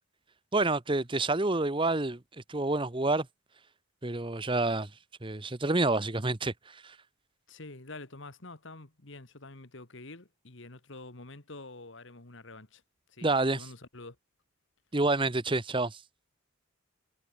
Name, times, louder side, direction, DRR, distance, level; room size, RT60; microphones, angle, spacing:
voice 1, 0.5-2.2 2.5-3.3 4.0-4.9 5.2-7.0 13.2-13.7 14.9-16.0, right 2 dB, 25° right, 1.0 m, -28 dB
voice 2, 7.5-12.8 13.1-14.2, left 2 dB, 60° left, 1.9 m, -47 dB
head